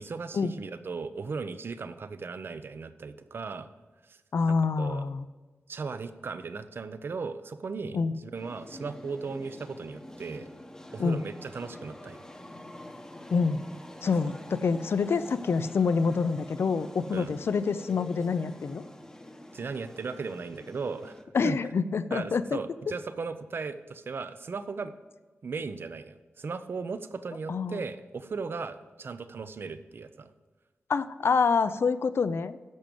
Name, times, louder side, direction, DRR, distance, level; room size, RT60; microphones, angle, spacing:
voice 1, 0.0-3.7 4.1-4.2 4.5-5.1 5.7-10.5 10.9-12.2 14.2-14.3 17.1-17.3 19.5-21.6 22.1-24.9 25.4-30.3, right 4 dB, 55° right, 11 dB, 0.7 m, -37 dB
voice 2, 4.3-5.2 7.9-8.1 11.0-11.2 13.3-13.6 14.0-18.8 21.3-22.6 27.5-27.8 30.9-32.6, left 5 dB, 60° left, 13 dB, 0.5 m, -26 dB
sound 1, 8.3-21.2, left 1 dB, 15° left, 0.9 m, -46 dB
10.5 x 7.6 x 5.2 m, 1.3 s
wide cardioid pair, 160°, 5 cm